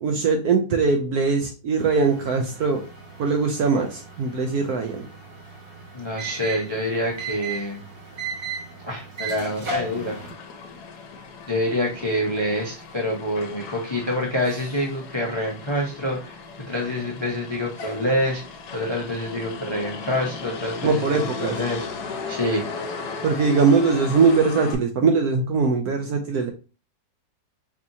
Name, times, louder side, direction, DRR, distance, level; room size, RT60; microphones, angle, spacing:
voice 1, 0.0-2.8 3.2-5.0 20.8-21.6 23.2-26.5, right 4 dB, 70° right, 4 dB, 0.9 m, -21 dB
sound 1, 1.8-10.3, right 3 dB, 40° right, 0.9 m, -36 dB
voice 2, 5.9-7.8 8.8-10.1 11.5-16.4 16.7-18.4 18.7-21.8 22.3-22.7, left 1 dB, 40° left, -2 dB, 0.3 m, -26 dB
Motor vehicle (road), 9.9-24.7, left 4 dB, 70° left, 1.1 m, -37 dB
4.7 x 2.8 x 2.6 m, 0.33 s
omnidirectional pair, 2.1 m